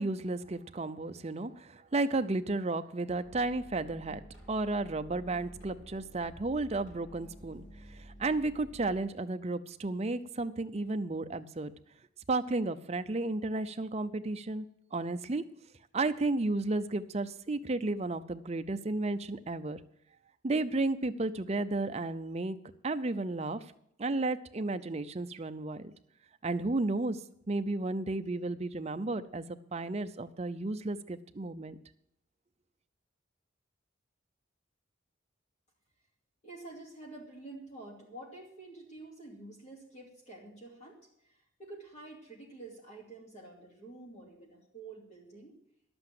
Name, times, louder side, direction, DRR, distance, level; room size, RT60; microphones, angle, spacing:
voice 1, 0.0-4.2 4.5-11.7 12.3-14.7 14.9-15.4 15.9-19.8 20.4-22.6 22.8-23.6 24.0-25.9 26.4-27.2 27.5-31.8, right 2 dB, 30° right, 10 dB, 0.5 m, -33 dB
sound 1, 3.2-9.0, equal, 55° left, 4.8 m, -51 dB
voice 2, 36.4-45.6, right 2 dB, 35° left, -1 dB, 2.4 m, -49 dB
11.5 x 7.9 x 7.6 m, 0.74 s
head